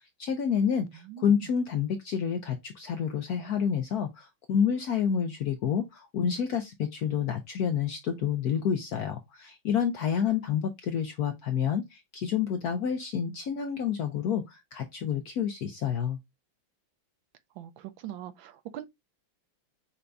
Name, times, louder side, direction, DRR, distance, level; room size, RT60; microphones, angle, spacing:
voice 1, 0.2-16.2, left 7 dB, 80° left, 0.8 m, -29 dB
voice 2, 0.9-1.3 17.6-18.9, right 12 dB, 75° right, 1.2 m, -42 dB
5.7 x 2.6 x 3.3 m
omnidirectional pair, 2.3 m